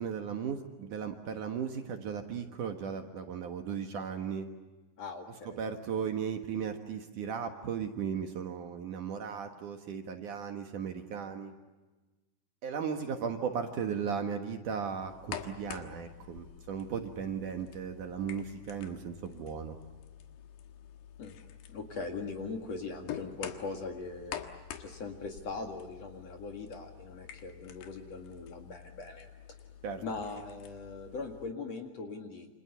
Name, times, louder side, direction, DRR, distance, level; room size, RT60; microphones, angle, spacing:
voice 1, 0.0-4.5 5.5-11.5 12.6-19.8 29.8-30.0, right 7 dB, 60° right, 5 dB, 2.6 m, -36 dB
voice 2, 5.0-5.7 21.2-21.4 21.7-24.4 24.8-29.3 30.0-32.5, left 3 dB, 45° left, 4 dB, 2.7 m, -40 dB
sound 1, 15.0-31.5, left 9 dB, 85° left, 3.6 m, -48 dB
28.5 x 26.5 x 6.9 m, 1.2 s
omnidirectional pair, 4.7 m